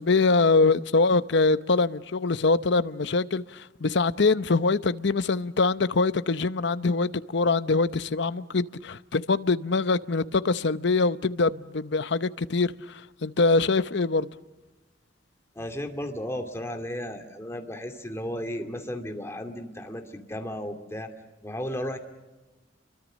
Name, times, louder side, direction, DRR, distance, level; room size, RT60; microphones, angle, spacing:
voice 1, 0.0-14.3, left 3 dB, 65° left, 0.7 m, -24 dB
voice 2, 15.5-21.1 21.4-22.0, equal, 15° left, 2.5 m, -34 dB
29.0 x 24.0 x 6.3 m
head